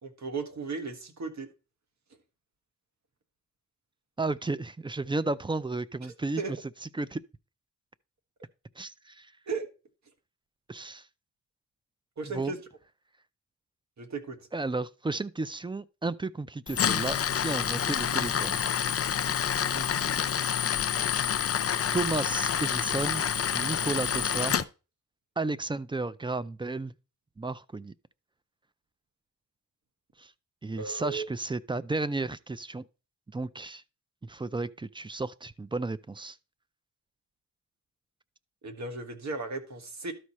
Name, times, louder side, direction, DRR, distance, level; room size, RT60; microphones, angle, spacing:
voice 1, 0.0-1.5 6.4-6.5 9.5-9.7 12.2-12.6 14.0-14.4 19.7-20.0 30.8-31.3 38.6-40.1, right 4 dB, 55° right, 1.6 m, -35 dB
voice 2, 4.2-6.4 6.9-7.2 8.8-9.3 10.7-11.1 12.2-12.5 14.5-18.6 21.9-24.7 25.4-26.9 27.4-27.9 30.2-30.3 30.6-32.8 33.3-33.8 34.2-36.4, right 3 dB, 15° right, 0.4 m, -33 dB
Tools, 16.7-24.6, left 8 dB, 45° left, 0.5 m, -28 dB
12.5 x 4.8 x 4.2 m
cardioid pair, 85°, 33 cm